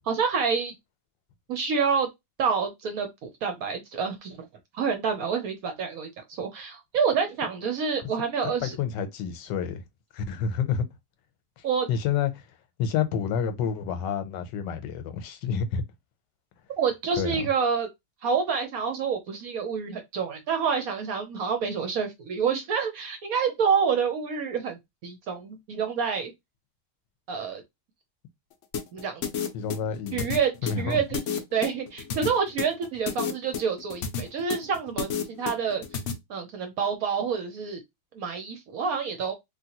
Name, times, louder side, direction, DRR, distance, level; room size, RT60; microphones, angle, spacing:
voice 1, 0.1-0.7 1.5-2.1 2.4-4.4 4.7-8.8 11.6-11.9 16.8-17.9 18.2-26.3 27.3-27.6 28.9-29.3 30.1-31.2 31.5-35.8 36.3-37.8 38.1-39.3, right 6 dB, 65° right, 0.9 m, -28 dB
voice 2, 8.4-9.8 10.1-10.9 11.6-12.5 12.8-15.8 17.2-17.5 29.5-31.0, left 7 dB, 90° left, 1.3 m, -29 dB
sound 1, 28.7-36.1, left 7 dB, 70° left, 0.7 m, -31 dB
3.2 x 2.5 x 2.8 m
omnidirectional pair, 1.9 m